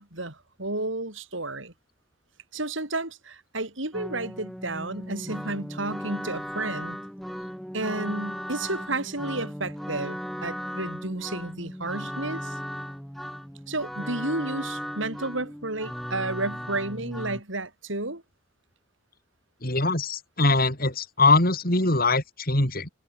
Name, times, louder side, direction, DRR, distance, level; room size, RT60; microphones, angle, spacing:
voice 1, 0.0-1.7 2.5-7.0 7.7-12.6 13.7-18.2, right 2 dB, 70° right, 7.0 m, -32 dB
sound 1, 3.9-17.4, equal, ahead, 6.7 m, -36 dB
voice 2, 19.6-22.9, left 2 dB, 45° left, 7.5 m, -22 dB
head